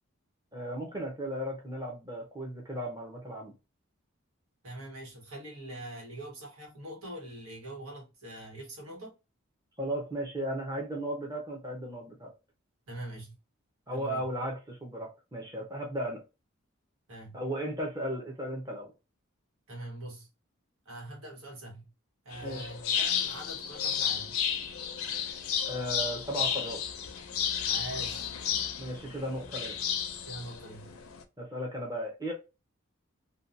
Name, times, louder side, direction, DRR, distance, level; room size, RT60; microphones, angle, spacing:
voice 1, 0.5-3.5 9.8-12.3 13.9-16.2 17.3-18.9 22.4-22.7 25.6-26.8 28.8-29.8 31.4-32.3, right 1 dB, 15° right, 0.6 m, -35 dB
voice 2, 4.6-9.1 12.9-13.3 13.9-14.3 17.1-17.4 19.7-20.3 20.8-21.9 22.2-24.4 27.7-28.3 30.2-31.0, right 1 dB, 85° right, 1.3 m, -43 dB
sound 1, 22.3-31.2, left 8 dB, 85° left, 0.4 m, -33 dB
2.7 x 2.2 x 2.5 m
head